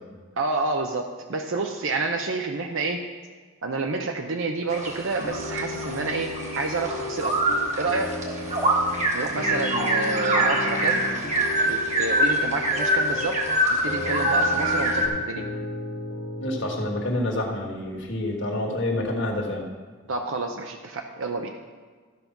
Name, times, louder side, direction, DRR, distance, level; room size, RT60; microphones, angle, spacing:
voice 1, 0.4-3.0 3.6-6.3 6.6-7.4 7.8-8.2 9.1-11.0 11.6-13.4 13.8-15.4 20.1-21.5, right 3 dB, 70° right, 4 dB, 0.7 m, -29 dB
sound 1, 4.7-15.1, right 1 dB, 35° right, 1.4 m, -25 dB
sound 2, 5.2-17.0, left 3 dB, 40° left, 1.1 m, -34 dB
voice 2, 16.4-19.7, left 1 dB, 60° left, 0 dB, 1.7 m, -28 dB
14.0 x 5.3 x 5.9 m, 1.5 s
head